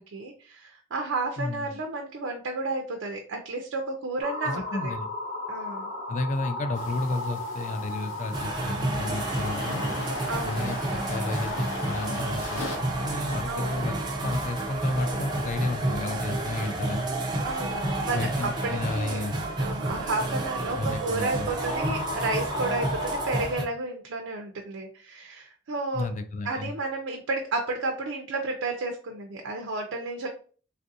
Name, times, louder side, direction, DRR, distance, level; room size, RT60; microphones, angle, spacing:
voice 1, 0.0-4.9 5.5-5.9 10.2-10.7 13.5-14.1 17.4-19.2 19.6-26.1 26.4-30.3, right 3 dB, 85° right, 2 dB, 0.5 m, -32 dB
voice 2, 1.4-1.8 4.5-5.1 6.1-9.9 10.4-17.0 18.1-19.4 20.8-21.5 25.9-26.7, left 2 dB, 35° left, 9 dB, 0.3 m, -32 dB
sound 1, 4.2-23.5, left 2 dB, 55° left, 0.9 m, -37 dB
sound 2, 6.8-12.8, left 3 dB, 80° left, 0.8 m, -39 dB
sound 3, 8.3-23.6, right 2 dB, 20° right, 0.5 m, -31 dB
3.4 x 2.5 x 2.6 m, 0.41 s
head